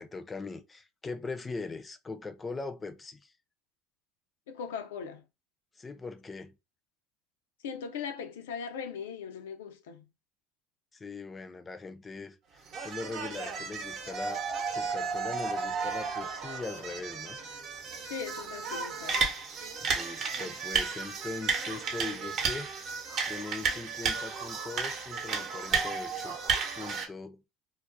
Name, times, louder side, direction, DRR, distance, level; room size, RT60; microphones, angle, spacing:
voice 1, 0.0-3.3 5.8-6.5 10.9-17.4 19.8-22.7 23.2-26.4 26.7-27.4, left 3 dB, 25° left, 0.4 m, -41 dB
voice 2, 4.5-5.2 7.6-10.1 18.0-19.2, left 6 dB, 85° left, 0.4 m, -39 dB
sound 1, 12.7-27.1, right 5 dB, 50° right, 0.8 m, -33 dB
2.3 x 2.0 x 2.5 m
hypercardioid pair, 85°, 0 cm